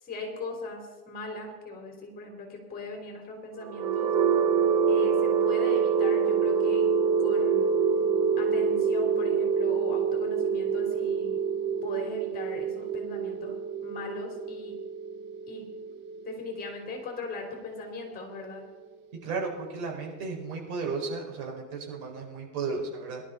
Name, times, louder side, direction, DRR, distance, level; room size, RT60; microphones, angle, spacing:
voice 1, 0.0-4.1 4.9-6.9 7.2-7.7 8.4-11.4 11.8-13.5 13.8-14.8 15.5-15.7 16.2-18.6, left 3 dB, 20° left, 2 dB, 3.3 m, -39 dB
sound 1, 3.6-17.5, right 6 dB, 25° right, 0.4 m, -26 dB
voice 2, 19.2-23.2, right 4 dB, 70° right, 0 dB, 5.2 m, -34 dB
18.0 x 12.0 x 4.0 m, 1.3 s
supercardioid pair, 170°, 45 cm